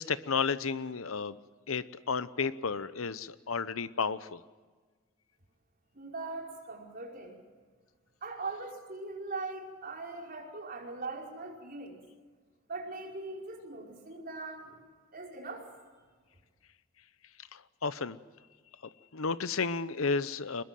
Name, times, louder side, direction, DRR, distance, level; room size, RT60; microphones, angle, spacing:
voice 1, 0.0-1.4 1.7-4.4 17.5-18.2 19.1-20.6, left 5 dB, 75° left, 15 dB, 0.8 m, -32 dB
voice 2, 5.9-7.4 8.2-12.0 12.7-14.8 15.1-15.7, right 3 dB, 45° right, 0 dB, 5.2 m, -41 dB
23.5 x 21.0 x 7.7 m, 1.5 s
head